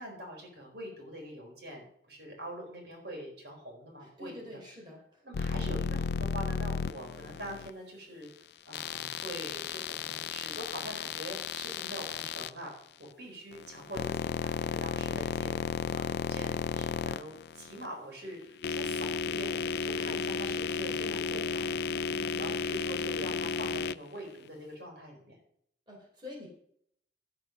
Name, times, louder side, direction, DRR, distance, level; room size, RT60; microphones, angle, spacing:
voice 1, 0.0-4.5 5.2-8.3 8.6-12.7 13.0-19.5 19.8-21.8 22.4-25.3, equal, 65° right, 0 dB, 4.4 m, -44 dB
voice 2, 4.0-5.2 22.1-22.6 25.9-26.5, left 2 dB, 25° right, -2 dB, 3.8 m, -47 dB
sound 1, 5.3-7.7 8.7-12.5 13.5-17.9 18.4-24.0, left 5 dB, 65° left, 0.3 m, -33 dB
13.0 x 7.0 x 6.2 m, 0.67 s
head